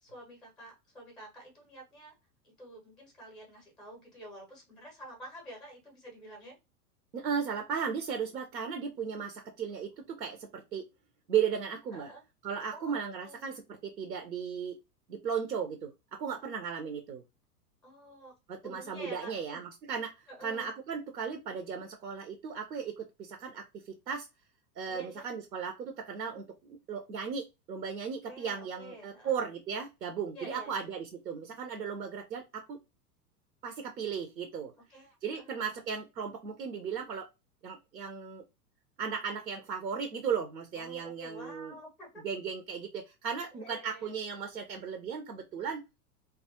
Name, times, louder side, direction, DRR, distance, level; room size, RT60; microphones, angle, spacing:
voice 1, 0.0-2.1 2.4-6.6 11.9-12.2 12.7-13.4 17.8-18.3 18.6-19.6 20.3-20.7 24.9-25.3 28.2-29.5 30.3-30.9 34.9-35.8 40.7-42.2 43.5-44.1, right 1 dB, ahead, 0 dB, 0.4 m, -49 dB
voice 2, 7.1-10.8 11.3-12.1 12.4-14.8 15.1-17.2 18.5-20.1 20.4-24.3 24.8-32.8 33.6-34.7 35.2-37.3 37.6-38.4 39.0-41.7 42.2-45.8, right 7 dB, 85° right, 5 dB, 0.6 m, -36 dB
2.2 x 2.0 x 2.8 m, 0.25 s
figure-of-eight pair, 95°, 48 cm